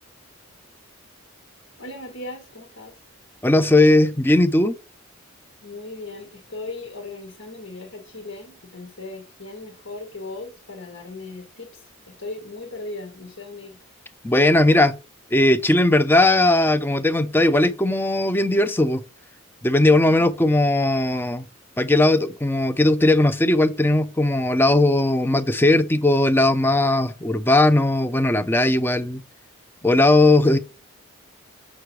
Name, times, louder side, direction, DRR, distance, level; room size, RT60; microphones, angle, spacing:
voice 1, 1.8-3.0 5.6-13.8, left 2 dB, 75° left, 1.6 m, -38 dB
voice 2, 3.4-4.7 14.2-14.9 15.3-19.0 19.6-21.5 21.8-29.2 29.8-30.6, left 2 dB, 10° left, 0.4 m, -18 dB
6.7 x 6.2 x 3.2 m
head